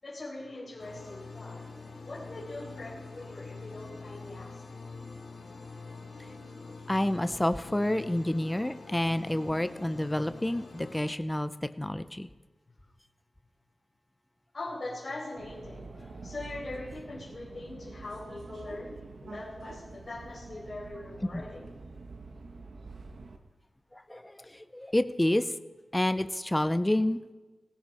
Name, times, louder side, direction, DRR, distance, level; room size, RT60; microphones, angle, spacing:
voice 1, 0.0-1.7 2.1-4.8 9.0-9.3 14.5-21.6, left 2 dB, 40° left, -7 dB, 5.1 m, -42 dB
sound 1, 0.8-11.1, left 3 dB, 65° left, 2.7 m, -45 dB
voice 2, 6.9-12.3 21.3-21.4 23.9-25.5 25.9-27.3, left 1 dB, 10° left, 11 dB, 0.6 m, -29 dB
Subway metro underground, 15.4-23.4, right 3 dB, 65° right, 1.4 m, -46 dB
19.0 x 16.5 x 4.2 m, 1.2 s
wide cardioid pair, 145°, 0 cm